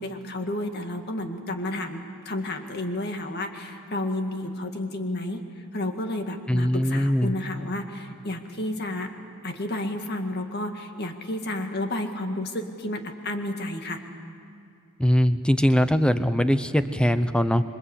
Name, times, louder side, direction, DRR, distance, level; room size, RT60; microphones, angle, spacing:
voice 1, 0.0-9.1 9.4-14.0, left 1 dB, 45° left, 5 dB, 2.0 m, -31 dB
voice 2, 6.5-7.3 15.0-17.6, equal, 5° left, 11 dB, 0.7 m, -21 dB
27.0 x 24.0 x 8.3 m, 2.4 s
head